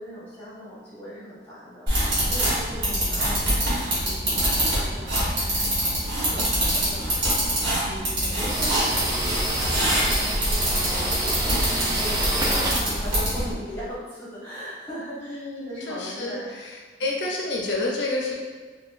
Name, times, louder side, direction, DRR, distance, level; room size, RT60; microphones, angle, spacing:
voice 1, 0.0-3.7 4.0-11.6 11.9-16.5 17.0-17.2, equal, 10° left, -11 dB, 1.2 m, -39 dB
sound 1, 1.9-13.5, right 1 dB, 65° right, 1.5 m, -25 dB
sound 2, 8.5-13.9, right 1 dB, 20° right, 0.4 m, -27 dB
voice 2, 15.2-16.7 17.0-18.3, left 2 dB, 70° left, -2 dB, 0.6 m, -29 dB
3.9 x 2.5 x 2.5 m, 1.5 s
head